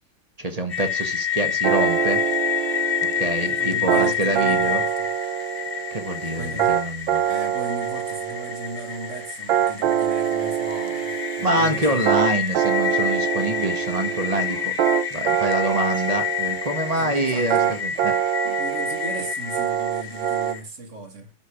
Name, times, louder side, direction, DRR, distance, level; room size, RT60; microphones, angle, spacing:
voice 1, 0.4-2.2 3.1-4.8 5.9-7.2 11.4-14.7 15.1-18.1, right 2 dB, 20° right, 1.3 m, -26 dB
sound 1, 0.7-20.6, left 9 dB, 30° left, 1.3 m, -29 dB
sound 2, 1.6-20.5, right 10 dB, 70° right, 1.4 m, -25 dB
voice 2, 3.3-5.1 6.3-6.8 7.2-12.2 16.9-17.8 18.6-21.3, right 2 dB, 40° right, 1.7 m, -37 dB
12.0 x 5.3 x 4.9 m
omnidirectional pair, 2.3 m